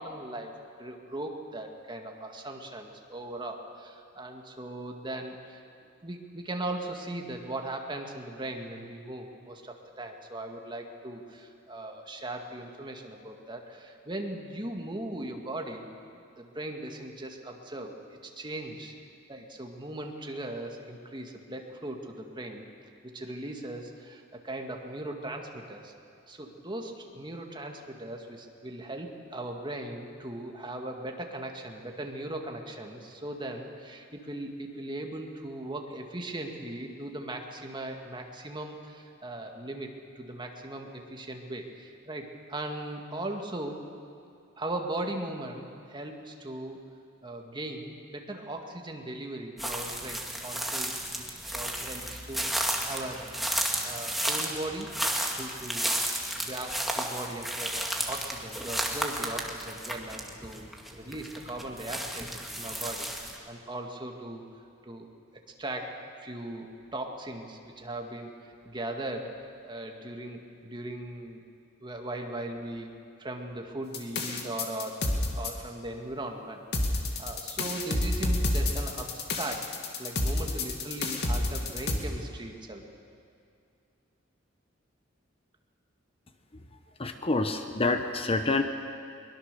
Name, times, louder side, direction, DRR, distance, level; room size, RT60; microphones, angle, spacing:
voice 1, 0.0-15.9 16.4-18.0 18.2-18.9 19.3-22.7 23.1-25.9 26.3-43.8 44.6-46.8 47.2-53.2 53.8-54.9 55.3-56.0 56.4-60.6 60.9-64.4 64.8-65.1 65.6-71.4 71.8-72.9 73.2-79.7 80.0-82.9, right 1 dB, 25° right, 3 dB, 1.9 m, -39 dB
sound 1, 49.6-63.4, right 1 dB, ahead, 2.1 m, -33 dB
sound 2, 73.9-75.5 76.7-82.0, left 2 dB, 55° left, 2.4 m, -29 dB
voice 2, 87.0-88.6, left 3 dB, 30° left, 7 dB, 0.9 m, -27 dB
22.5 x 21.5 x 6.9 m, 2.5 s
head